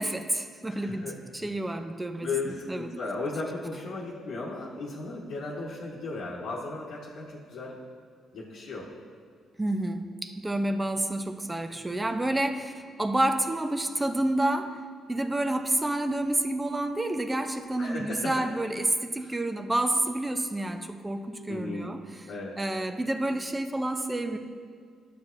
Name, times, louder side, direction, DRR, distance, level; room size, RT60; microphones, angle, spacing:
voice 1, 0.0-2.9 9.6-12.7 13.0-14.8 15.1-22.3 22.6-24.4, right 1 dB, 15° right, 7 dB, 0.5 m, -29 dB
voice 2, 0.7-1.2 1.4-1.5 2.2-7.8 8.3-8.9 17.8-18.3 19.2-19.3 21.5-21.9 22.3-22.6, left 3 dB, 75° left, -6 dB, 1.1 m, -36 dB
11.5 x 7.3 x 2.6 m, 2.1 s
cardioid pair, 90°, 0 cm